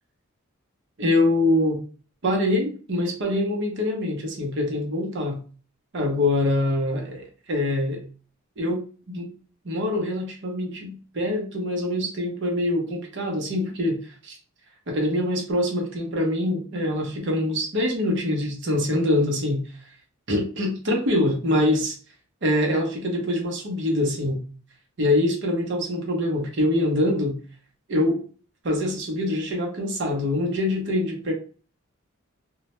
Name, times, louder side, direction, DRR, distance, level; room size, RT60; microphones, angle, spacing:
voice 1, 1.0-1.8 2.2-5.4 5.9-8.0 8.6-9.3 9.6-14.4 14.9-19.9 20.3-22.0 22.4-24.4 25.0-27.4 27.9-28.2 28.6-31.3, left 1 dB, 55° right, 1 dB, 0.7 m, -24 dB
2.1 x 2.0 x 2.9 m, 0.39 s
head